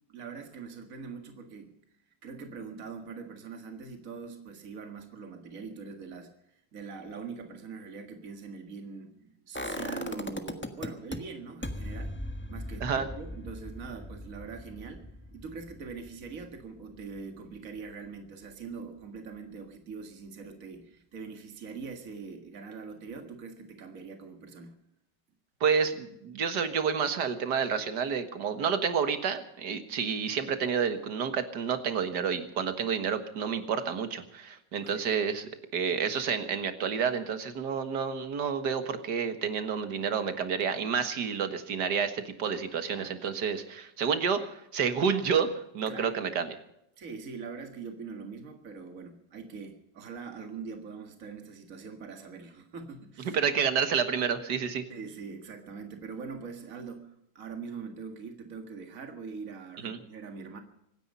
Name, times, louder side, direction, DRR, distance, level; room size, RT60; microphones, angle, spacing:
voice 1, 0.1-1.7 2.2-12.2 12.5-24.8 34.8-35.1 42.9-43.3 45.9-46.2 47.0-53.4 54.9-60.6, right 5 dB, 50° right, 5 dB, 2.2 m, -43 dB
sound 1, 9.5-11.2 11.6-17.5 17.8-17.9, left 1 dB, 5° left, 1.2 m, -39 dB
voice 2, 25.6-35.5 35.7-45.5 45.7-46.6 53.3-54.8 59.8-60.0, right 6 dB, 70° right, 9 dB, 2.0 m, -29 dB
25.5 x 10.0 x 5.5 m, 0.80 s
omnidirectional pair, 1.9 m